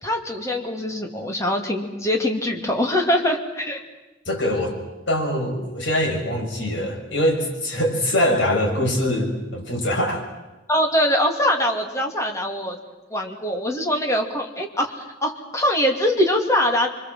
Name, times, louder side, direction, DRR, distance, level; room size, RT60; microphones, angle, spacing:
voice 1, 0.0-3.8 10.7-12.8 13.1-16.9, left 1 dB, 15° left, 2 dB, 2.8 m, -23 dB
voice 2, 4.2-4.7 5.1-10.3, left 1 dB, 65° left, 0 dB, 6.7 m, -23 dB
27.0 x 24.5 x 7.8 m, 1.0 s
head